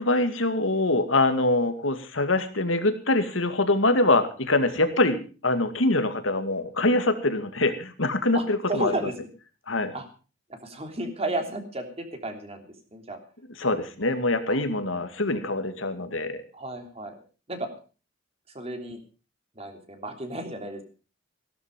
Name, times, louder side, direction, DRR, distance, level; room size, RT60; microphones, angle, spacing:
voice 1, 0.0-8.9 9.7-9.9 13.6-16.4, left 2 dB, 85° left, 9 dB, 2.3 m, -24 dB
voice 2, 8.3-9.2 9.9-10.0 10.5-13.2 14.5-14.6 16.5-17.2 17.5-17.7 18.5-19.0 19.5-20.8, right 2 dB, 30° right, 5 dB, 3.2 m, -33 dB
16.5 x 12.5 x 5.3 m, 0.36 s
head